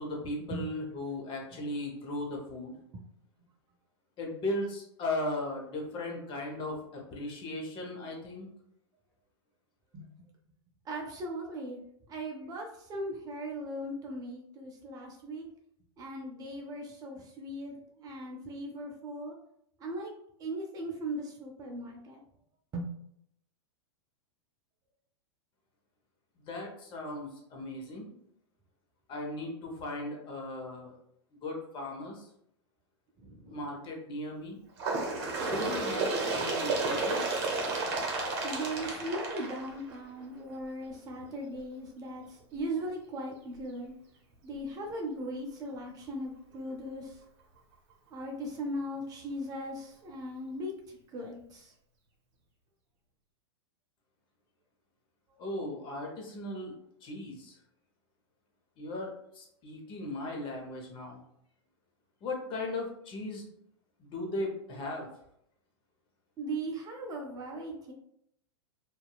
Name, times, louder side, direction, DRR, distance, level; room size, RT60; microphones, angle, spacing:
voice 1, 0.0-2.7 4.2-8.5 26.4-28.2 29.1-31.0 31.3-32.3 33.5-34.6 35.4-37.5 55.4-56.7 57.0-57.6 58.8-61.2 62.2-63.4 64.0-65.1, left 2 dB, 35° left, 0 dB, 0.8 m, -37 dB
voice 2, 9.9-10.3 10.8-11.8 12.1-15.5 16.0-19.4 19.8-20.1 20.4-22.2 22.7-22.9 33.2-33.6 38.4-43.9 44.4-47.2 48.1-51.7 66.4-67.9, right 1 dB, 25° right, 1 dB, 0.5 m, -38 dB
Bird, 34.8-40.2 41.1-41.2 41.6-41.7 42.6-42.7 43.6-43.7 44.6-44.7, right 3 dB, 45° right, 0.8 m, -32 dB
2.7 x 2.2 x 2.3 m, 0.72 s
hypercardioid pair, 105°, 14 cm